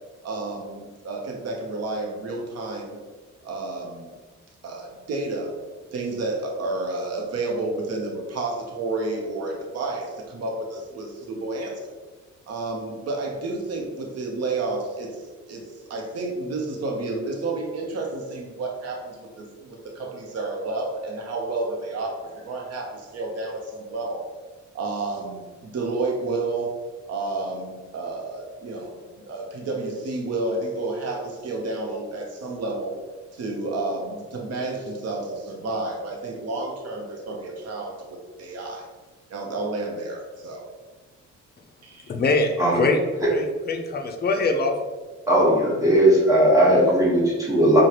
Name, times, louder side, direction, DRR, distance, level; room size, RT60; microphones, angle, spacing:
voice 1, 0.2-3.0 3.4-4.1 4.6-5.5 5.9-11.9 12.5-15.2 15.5-24.3 24.7-26.7 27.1-32.9 33.3-38.9 39.3-40.6 41.8-42.1, right 2 dB, 55° right, 0 dB, 0.9 m, -30 dB
voice 2, 42.1-43.0 43.3-44.7, left 3 dB, 35° left, 4 dB, 0.5 m, -23 dB
voice 3, 45.3-47.8, right 1 dB, 10° right, -5 dB, 1.4 m, -18 dB
4.7 x 2.3 x 3.0 m, 1.3 s
cardioid pair, 90°, 30 cm